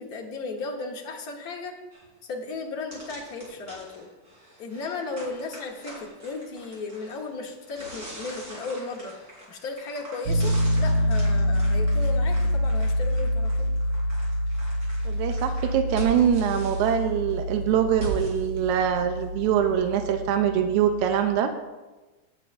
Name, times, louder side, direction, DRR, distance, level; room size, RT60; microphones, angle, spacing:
voice 1, 0.0-1.8 2.2-4.1 4.6-9.1 9.5-13.7, left 3 dB, 45° left, 0 dB, 1.2 m, -35 dB
sound 1, 1.9-2.0 2.5-2.6 2.9-19.8, right 1 dB, 30° right, 4.4 m, -42 dB
Piano, 10.3-21.1, equal, 55° right, 1.8 m, -26 dB
voice 2, 15.1-21.5, right 9 dB, 90° right, 6 dB, 2.1 m, -23 dB
16.5 x 9.3 x 2.6 m, 1.2 s
omnidirectional pair, 3.4 m